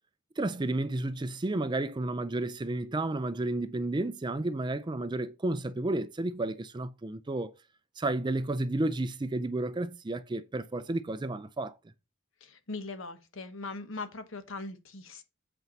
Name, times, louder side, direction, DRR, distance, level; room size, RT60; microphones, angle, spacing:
voice 1, 0.4-7.5 8.0-11.8, right 2 dB, 20° right, 0.4 m, -32 dB
voice 2, 12.4-15.2, left 3 dB, 60° left, 1.1 m, -40 dB
8.2 x 4.6 x 5.3 m
head